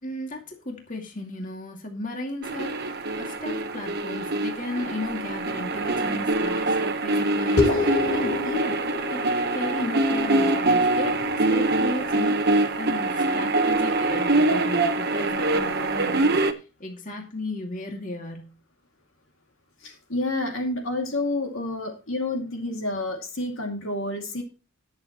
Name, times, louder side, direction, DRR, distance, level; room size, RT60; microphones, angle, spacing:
voice 1, 0.0-9.2 9.5-11.2 11.5-18.5, left 2 dB, 35° left, 2 dB, 2.4 m, -35 dB
sound 1, 2.4-16.5, right 2 dB, 45° right, 1.1 m, -24 dB
sound 2, 7.6-12.4, left 3 dB, 90° left, 2.7 m, -29 dB
voice 2, 19.8-24.4, left 2 dB, 60° left, 3 dB, 2.4 m, -29 dB
20.0 x 7.2 x 3.0 m, 0.31 s
head